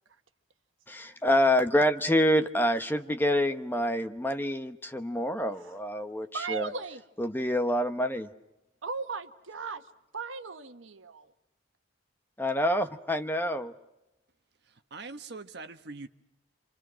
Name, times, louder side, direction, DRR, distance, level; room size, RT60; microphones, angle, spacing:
voice 1, 0.9-6.7 7.2-8.3 12.4-13.7, left 1 dB, 10° left, 1.0 m, -27 dB
voice 2, 6.3-7.0 8.8-9.8 10.1-11.3, right 4 dB, 80° right, 1.4 m, -37 dB
voice 3, 14.7-16.1, right 3 dB, 60° right, 1.3 m, -43 dB
28.0 x 27.5 x 6.3 m
head